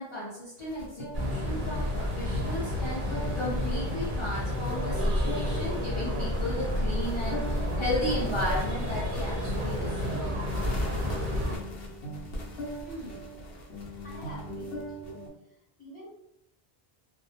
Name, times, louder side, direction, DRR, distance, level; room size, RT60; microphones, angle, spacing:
voice 1, 0.0-10.3, left 1 dB, 35° left, -9 dB, 0.7 m, -35 dB
sound 1, 0.6-15.3, equal, 75° left, 0.8 m, -39 dB
sound 2, 1.1-11.6, left 1 dB, 60° right, 0.8 m, -30 dB
voice 2, 12.8-13.3 13.9-15.2 15.8-16.1, right 1 dB, 10° left, -8 dB, 1.0 m, -45 dB
2.4 x 2.0 x 2.7 m, 0.84 s
omnidirectional pair, 1.0 m